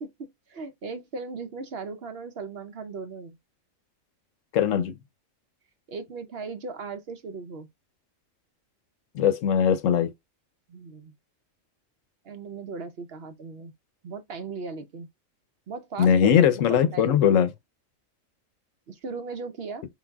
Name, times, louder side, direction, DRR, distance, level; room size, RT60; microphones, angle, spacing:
voice 1, 0.0-3.4 5.9-7.7 10.7-11.1 12.2-13.7 14.0-15.1 15.7-16.4 16.7-17.1 18.9-19.8, right 4 dB, 60° right, 0.8 m, -37 dB
voice 2, 4.5-5.0 9.1-10.1 16.0-17.5, left 8 dB, 80° left, 1.0 m, -20 dB
4.0 x 3.8 x 2.2 m
omnidirectional pair, 1.3 m